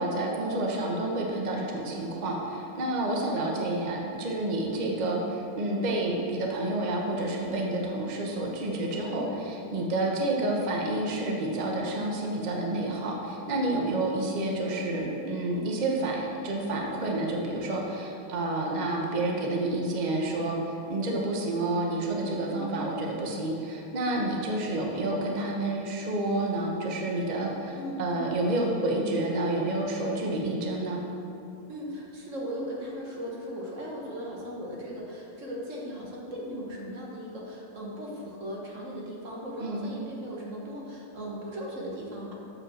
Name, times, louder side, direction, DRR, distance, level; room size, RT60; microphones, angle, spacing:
voice 1, 0.0-31.0 39.6-39.8, right 2 dB, 70° right, 0 dB, 0.4 m, -29 dB
voice 2, 22.5-22.8 27.7-28.3 31.7-42.3, equal, 45° right, -3 dB, 1.3 m, -38 dB
7.4 x 4.9 x 6.2 m, 2.8 s
omnidirectional pair, 2.1 m